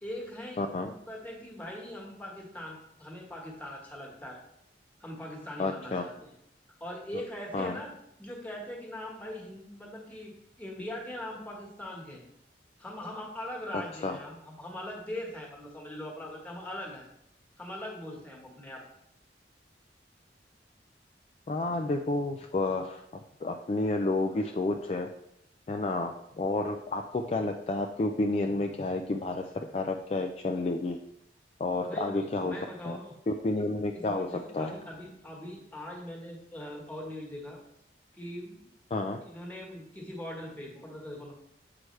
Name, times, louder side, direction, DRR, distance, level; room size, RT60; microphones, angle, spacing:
voice 1, 0.0-4.4 5.0-6.3 6.8-7.9 8.2-10.3 10.6-12.2 12.8-17.1 17.6-18.8 31.8-33.1 33.9-37.6 38.1-38.7 39.2-41.3, left 1 dB, 10° left, -1 dB, 1.4 m, -41 dB
voice 2, 0.6-0.9 5.6-6.0 7.5-7.8 14.0-14.2 21.5-23.0 23.4-25.1 25.7-31.0 31.6-32.6 32.8-33.0 33.3-34.7 38.9-39.2, left 2 dB, 35° left, 4 dB, 0.3 m, -30 dB
7.7 x 4.8 x 3.2 m, 0.79 s
head